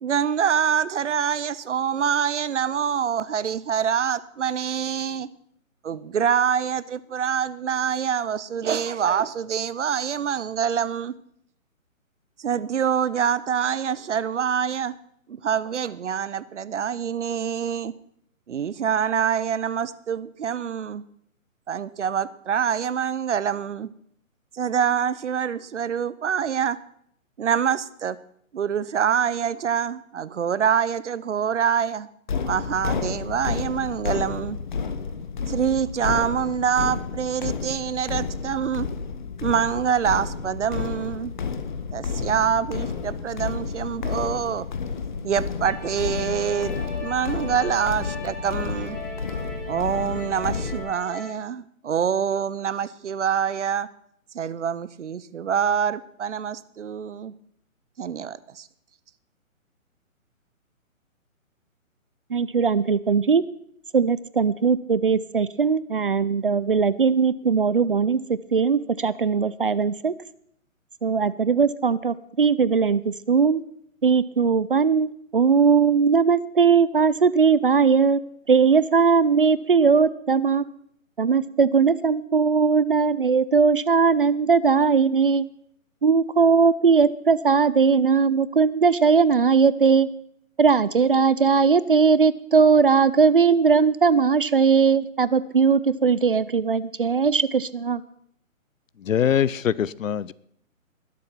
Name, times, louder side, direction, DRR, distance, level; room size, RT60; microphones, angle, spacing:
voice 1, 0.0-5.3 5.8-11.1 12.4-15.0 15.3-17.9 18.5-21.0 21.7-23.9 24.5-26.8 27.4-28.2 28.5-32.1 32.4-34.6 35.5-38.9 39.4-41.3 41.9-44.7 45.2-46.7 47.0-49.0 49.7-53.9 54.3-57.3 58.0-58.7, right 8 dB, 60° right, 17 dB, 0.8 m, -25 dB
sound 1, 32.3-50.8, left 5 dB, 35° left, 1.2 m, -31 dB
sound 2, 45.6-51.3, left 2 dB, ahead, 1.5 m, -38 dB
voice 2, 62.3-63.4 63.9-70.1 71.0-73.6 74.0-78.2 78.5-80.6 81.2-85.5 86.0-90.1 90.6-98.0, right 5 dB, 40° right, 17 dB, 0.5 m, -19 dB
voice 3, 99.0-100.3, left 9 dB, 70° left, 21 dB, 0.7 m, -22 dB
20.5 x 7.6 x 5.8 m, 0.70 s
hypercardioid pair, 165°, 41 cm